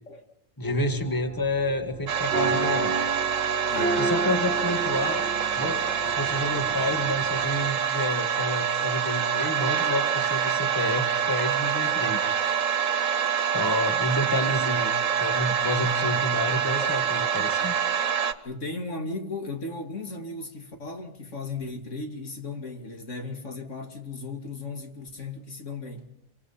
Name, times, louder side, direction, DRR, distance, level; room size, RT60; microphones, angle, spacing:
voice 1, 0.6-2.9 4.0-5.2 5.6-12.2 13.4-14.9 15.2-17.8, left 1 dB, 15° left, 1.9 m, -29 dB
sound 1, 0.6-7.7, right 3 dB, 50° right, 3.5 m, -32 dB
sound 2, 2.1-18.3, right 8 dB, 80° right, 1.6 m, -26 dB
voice 2, 3.7-4.0 16.8-17.0 18.4-26.1, left 3 dB, 70° left, 2.8 m, -36 dB
28.0 x 24.0 x 5.8 m
omnidirectional pair, 1.3 m